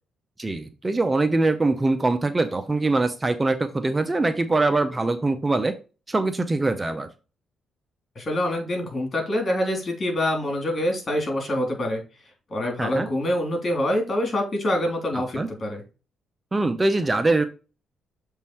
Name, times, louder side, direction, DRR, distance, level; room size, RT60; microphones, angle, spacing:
voice 1, 0.4-5.7 6.1-7.1 12.8-13.1 15.4-15.5 16.5-17.5, right 2 dB, 20° right, 9 dB, 0.7 m, -23 dB
voice 2, 8.1-12.0 12.5-15.8, left 1 dB, 35° left, 2 dB, 3.4 m, -25 dB
7.2 x 3.7 x 4.3 m, 0.32 s
cardioid pair, 90°, 0 cm